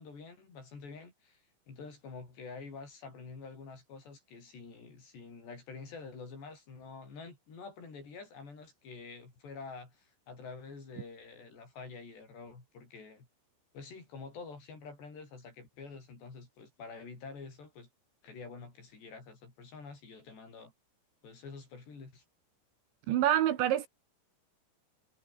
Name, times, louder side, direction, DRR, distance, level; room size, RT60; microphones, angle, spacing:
voice 1, 0.0-13.3 13.7-17.9 18.2-20.7 21.2-22.2, left 4 dB, 60° left, 9.7 m, -48 dB
voice 2, 23.1-23.9, right 12 dB, 70° right, 3.7 m, -26 dB
omnidirectional pair, 5.7 m